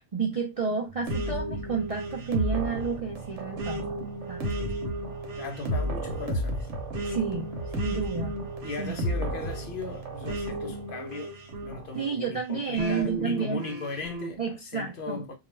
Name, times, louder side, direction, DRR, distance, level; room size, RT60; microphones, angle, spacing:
voice 1, 0.0-4.0 4.3-4.5 7.0-8.3 8.8-9.0 11.9-13.6 14.4-15.2, right 5 dB, 55° right, 0.4 m, -31 dB
sound 1, 0.9-12.3, right 5 dB, 75° left, 1.0 m, -45 dB
sound 2, 1.1-12.1 12.8-14.3, equal, 85° right, 1.0 m, -33 dB
voice 2, 5.4-6.7 8.6-11.3 11.6-15.3, left 3 dB, 60° left, 0.6 m, -38 dB
2.3 x 2.2 x 3.0 m
omnidirectional pair, 1.2 m